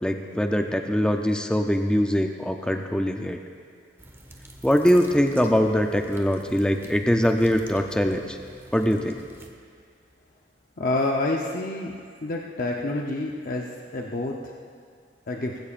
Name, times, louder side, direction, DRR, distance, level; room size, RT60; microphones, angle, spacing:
voice 1, 0.0-3.4 4.6-8.4 8.7-9.2, equal, 5° left, 4 dB, 0.5 m, -22 dB
sound 1, 4.0-9.5, right 1 dB, 15° right, 1.0 m, -47 dB
voice 2, 10.8-12.0 12.2-14.4 15.3-15.6, left 2 dB, 50° left, -1 dB, 0.8 m, -28 dB
19.5 x 15.5 x 2.5 m, 2.2 s
head